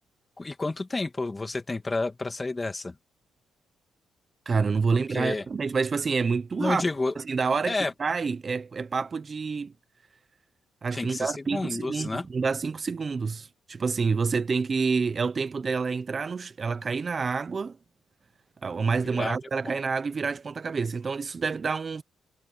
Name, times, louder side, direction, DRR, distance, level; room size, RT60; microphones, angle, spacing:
voice 1, 0.4-3.0 5.1-5.5 6.6-7.1 7.7-7.9 10.9-12.3 19.1-19.4 19.6-19.8, left 3 dB, 20° left, 2.3 m, -30 dB
voice 2, 4.5-6.8 7.2-7.7 8.0-9.7 10.8-17.8 18.6-22.0, right 5 dB, 35° right, 0.9 m, -28 dB
cardioid pair, 90°, 0 cm